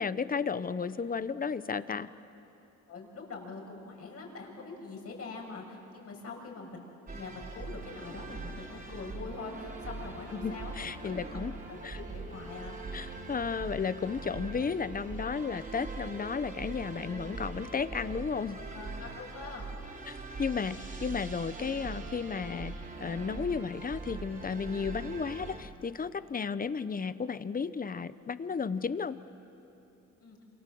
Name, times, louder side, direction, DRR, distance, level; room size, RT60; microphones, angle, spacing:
voice 1, 0.0-2.1 10.3-11.5 11.8-12.0 12.9-18.6 20.1-22.7 23.0-29.2, left 5 dB, 30° left, 14 dB, 0.9 m, -33 dB
voice 2, 2.9-6.9 7.1-11.4 11.7-12.8 18.5-19.6 30.2-30.4, left 3 dB, 50° left, 0 dB, 6.7 m, -44 dB
sound 1, 7.1-25.6, right 3 dB, 30° right, 3.8 m, -42 dB
28.5 x 26.0 x 7.8 m, 2.9 s
cardioid pair, 90°, 30 cm